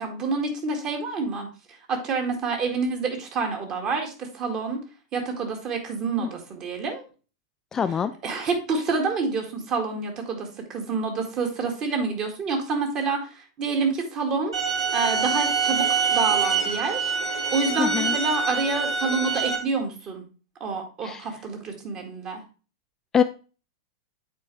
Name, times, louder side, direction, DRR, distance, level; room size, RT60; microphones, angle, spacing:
voice 1, 0.0-4.8 5.1-7.0 7.8-14.5 14.9-20.3 20.6-22.4, right 4 dB, 35° right, 3 dB, 1.8 m, -28 dB
voice 2, 7.7-8.1 17.8-18.1 21.0-21.2 23.1-23.2, left 7 dB, 20° left, 10 dB, 0.3 m, -23 dB
sound 1, 14.5-19.6, right 5 dB, 80° right, 4.1 m, -25 dB
8.2 x 4.4 x 3.2 m, 0.35 s
figure-of-eight pair, 95°, 2 cm